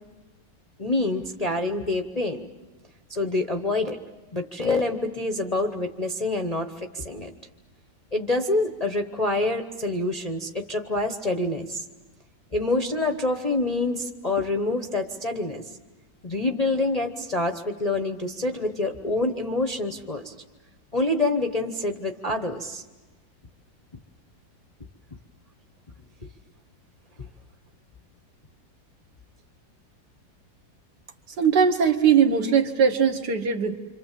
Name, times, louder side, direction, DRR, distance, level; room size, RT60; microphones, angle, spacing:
voice 1, 0.8-2.4 3.1-4.0 4.3-7.3 8.1-11.8 12.5-15.6 16.2-20.3 20.9-22.8 27.2-27.3, left 2 dB, 25° left, 3 dB, 0.8 m, -26 dB
voice 2, 31.4-33.8, right 7 dB, 60° right, 6 dB, 1.8 m, -20 dB
26.5 x 26.5 x 7.5 m, 1.2 s
omnidirectional pair, 2.1 m